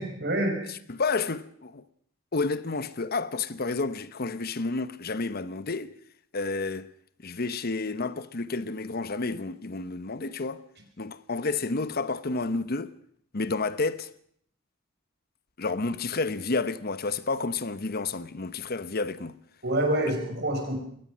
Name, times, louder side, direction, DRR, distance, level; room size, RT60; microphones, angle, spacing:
voice 1, 0.0-0.6 19.6-20.8, right 1 dB, 55° right, 5.3 m, -27 dB
voice 2, 0.7-1.8 2.3-5.9 6.3-6.9 7.2-10.6 11.0-12.9 13.3-14.1 15.6-19.4 20.0-20.1, left 3 dB, 50° left, 0.9 m, -30 dB
22.0 x 19.0 x 6.2 m
head